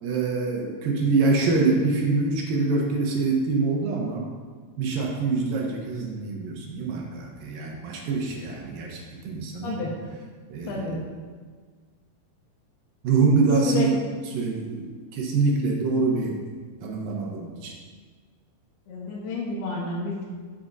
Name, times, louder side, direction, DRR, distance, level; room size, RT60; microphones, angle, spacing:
voice 1, 0.0-4.3 4.8-9.8 10.5-11.0 13.0-14.0 14.3-16.4 16.8-17.7, right 4 dB, 70° right, 0 dB, 2.5 m, -25 dB
voice 2, 10.7-11.0 13.7-13.9 18.9-20.3, left 4 dB, 80° left, -3 dB, 3.1 m, -30 dB
13.0 x 7.3 x 2.6 m, 1.5 s
omnidirectional pair, 4.5 m